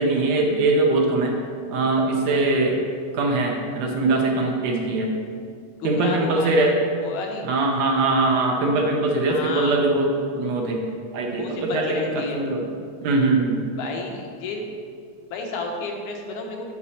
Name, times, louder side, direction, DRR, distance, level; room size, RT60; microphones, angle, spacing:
voice 1, 0.0-1.4 1.7-2.8 3.1-5.2 5.8-6.8 7.4-10.9 11.1-12.7 13.0-13.6, right 2 dB, 70° right, 1 dB, 1.9 m, -22 dB
voice 2, 5.8-6.7 7.0-7.5 9.3-9.8 11.3-12.4 13.8-14.6 15.3-16.7, left 3 dB, 80° left, 1 dB, 2.4 m, -31 dB
8.4 x 6.0 x 4.3 m, 2.2 s
omnidirectional pair, 3.4 m